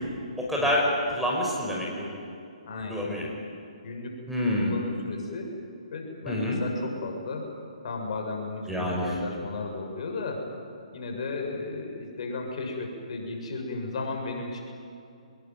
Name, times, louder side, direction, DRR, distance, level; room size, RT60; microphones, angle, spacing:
voice 1, 0.4-0.8 1.1-2.1 2.7-3.3 4.3-4.7 6.3-6.6 8.7-9.1, left 1 dB, ahead, -3 dB, 5.4 m, -27 dB
voice 2, 2.7-3.1 3.8-4.2 4.6-5.5 5.9-7.5 7.8-10.5 10.9-14.6, left 3 dB, 55° left, 2 dB, 7.0 m, -34 dB
25.0 x 21.5 x 9.6 m, 2.6 s
figure-of-eight pair, 135°, 4 cm